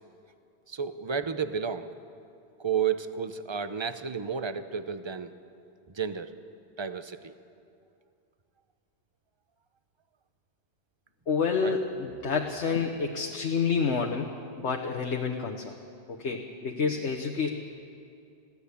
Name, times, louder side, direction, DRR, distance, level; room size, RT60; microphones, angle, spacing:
voice 1, 0.7-1.9 2.6-5.3 5.9-6.3 6.8-7.3 11.6-11.8, right 7 dB, 30° right, 11 dB, 0.7 m, -31 dB
voice 2, 11.3-15.8 16.1-17.5, left 5 dB, 80° left, 2 dB, 1.4 m, -29 dB
21.0 x 16.5 x 8.4 m, 2.5 s
omnidirectional pair, 1.2 m